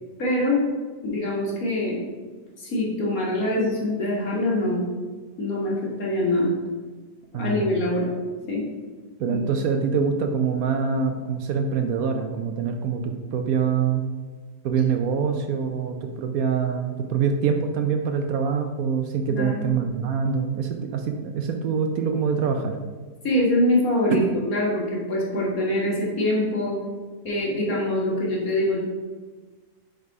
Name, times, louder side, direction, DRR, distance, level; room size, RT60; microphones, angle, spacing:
voice 1, 0.2-0.6 1.0-2.0 2.6-4.8 5.4-6.5 7.3-8.1 8.5-8.6 9.3-9.4 19.4-19.7 23.2-24.2 24.5-26.8 27.2-28.8, left 1 dB, 60° left, -4 dB, 1.9 m, -24 dB
voice 2, 7.3-7.7 9.2-14.0 14.6-22.8, right 6 dB, 70° right, 5 dB, 0.9 m, -25 dB
4.8 x 4.6 x 4.7 m, 1.4 s
omnidirectional pair, 1.7 m